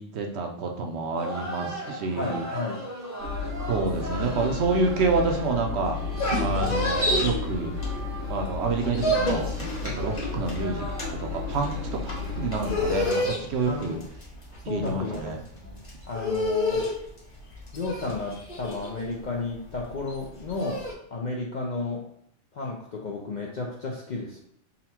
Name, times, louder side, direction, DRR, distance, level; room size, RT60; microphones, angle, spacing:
voice 1, 0.0-2.5 3.7-6.0 6.4-7.7 8.3-9.5 9.8-14.0 14.6-15.4, right 4 dB, 65° right, 2 dB, 0.8 m, -28 dB
sound 1, 1.1-13.2, right 1 dB, 15° right, 0.7 m, -39 dB
voice 2, 2.1-2.9 13.7-14.0 14.7-16.8 17.7-20.8 21.1-22.0 22.5-24.4, left 3 dB, 55° left, -1 dB, 0.5 m, -33 dB
sound 2, 3.2-13.1, left 5 dB, 90° right, 1.3 m, -33 dB
sound 3, 6.0-8.3 8.6-20.9, left 1 dB, 25° left, 1.1 m, -29 dB
4.0 x 2.1 x 4.2 m, 0.70 s
omnidirectional pair, 1.3 m